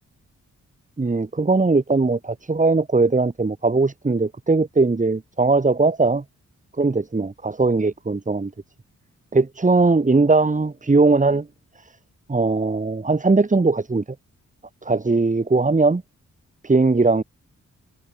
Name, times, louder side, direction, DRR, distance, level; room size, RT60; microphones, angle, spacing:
voice 1, 1.0-6.2 6.8-8.5 9.3-11.5 12.3-14.0 14.8-16.0 16.6-17.2, right 3 dB, 25° right, 1.5 m, -19 dB
cardioid pair, 55°, 31 cm